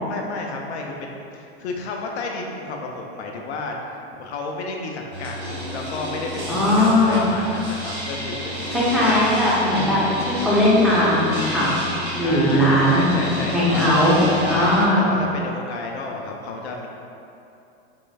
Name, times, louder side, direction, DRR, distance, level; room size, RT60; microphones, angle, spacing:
voice 1, 0.1-3.7 4.2-5.4 5.7-9.1 12.2-13.9 14.4-16.9, left 3 dB, 85° left, 1 dB, 0.5 m, -32 dB
sound 1, 5.1-14.8, equal, 30° right, 1.1 m, -31 dB
voice 2, 6.5-7.3 8.7-11.7 12.2-13.1 13.5-14.2 14.5-15.1, left 1 dB, ahead, -9 dB, 0.8 m, -18 dB
3.7 x 3.0 x 2.3 m, 2.7 s
hypercardioid pair, 105°, 32 cm